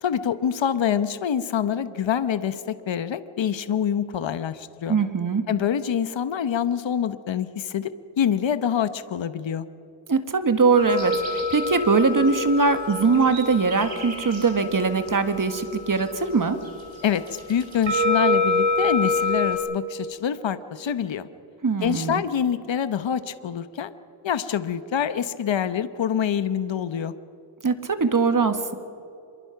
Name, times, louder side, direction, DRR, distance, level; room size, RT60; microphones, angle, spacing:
voice 1, 0.0-5.0 5.5-9.7 17.0-21.3 21.8-23.9 24.2-27.1, left 8 dB, 65° left, 12 dB, 1.0 m, -26 dB
voice 2, 4.9-5.5 10.1-16.6 21.6-22.2 27.6-28.7, right 4 dB, 40° right, 9 dB, 1.7 m, -21 dB
sound 1, 10.7-19.6, left 2 dB, 70° right, 5.9 m, -27 dB
26.0 x 23.0 x 5.9 m, 2.6 s
wide cardioid pair, 95°, 48 cm